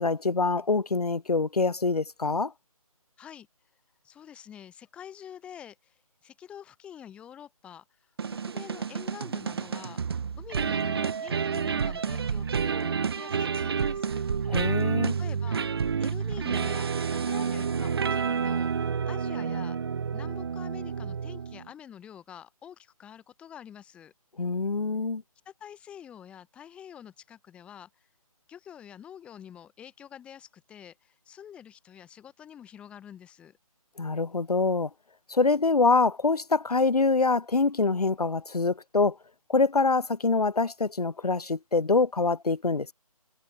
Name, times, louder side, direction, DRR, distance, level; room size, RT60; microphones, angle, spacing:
voice 1, 0.0-2.5 14.5-15.2 24.4-25.2 34.0-34.9 35.3-39.2 39.5-42.9, left 3 dB, 90° left, 2.4 m, -25 dB
voice 2, 4.0-8.0 8.3-10.0 10.4-14.2 15.2-15.7 16.0-19.8 20.1-24.1 25.5-28.1 28.5-33.6, left 9 dB, 5° left, 1.8 m, -47 dB
sound 1, 8.2-21.7, right 6 dB, 40° right, 0.9 m, -29 dB
hypercardioid pair, 170°, 19 cm